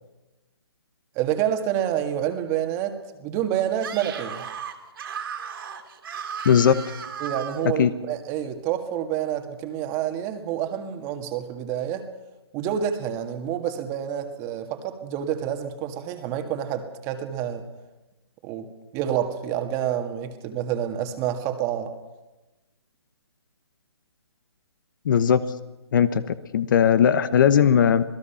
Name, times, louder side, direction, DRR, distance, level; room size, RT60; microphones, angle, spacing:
voice 1, 1.2-4.4 7.2-12.1 12.5-17.6 18.4-18.7 18.9-21.9, right 10 dB, 20° right, 6 dB, 1.9 m, -28 dB
Screaming, 3.7-7.7, right 7 dB, 55° right, 3.0 m, -35 dB
voice 2, 25.0-25.4 25.9-26.2 26.5-28.0, left 8 dB, 45° left, 13 dB, 1.2 m, -18 dB
27.0 x 19.0 x 5.8 m, 1.1 s
hypercardioid pair, 155°, 15 cm